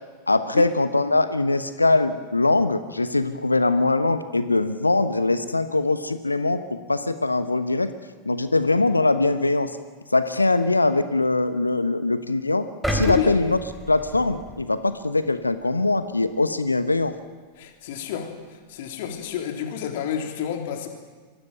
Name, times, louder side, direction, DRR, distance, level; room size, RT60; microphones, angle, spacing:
voice 1, 0.3-7.9 8.2-9.7 10.1-13.6 13.9-17.1, left 2 dB, 80° left, 12 dB, 1.1 m, -22 dB
sound 1, 12.8-15.0 15.5-15.6, right 1 dB, 5° right, 3.7 m, -31 dB
voice 2, 12.9-13.3 17.6-20.9, left 9 dB, 50° left, 4 dB, 3.4 m, -29 dB
24.0 x 16.5 x 9.2 m, 1.4 s
figure-of-eight pair, 90°, 0 cm